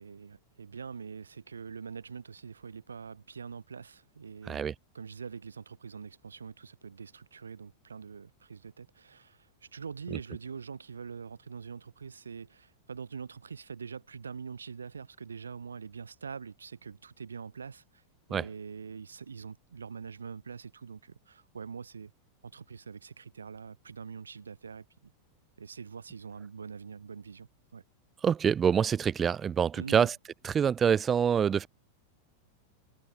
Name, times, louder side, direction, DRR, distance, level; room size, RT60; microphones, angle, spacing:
voice 1, 0.0-4.6 4.9-18.0 18.3-22.1 22.4-25.1 25.6-27.8 29.8-30.1, right 6 dB, 75° right, 4.5 m, -44 dB
voice 2, 28.2-30.1 30.4-31.7, right 7 dB, 20° right, 1.8 m, -26 dB
figure-of-eight pair, 90°, 0 cm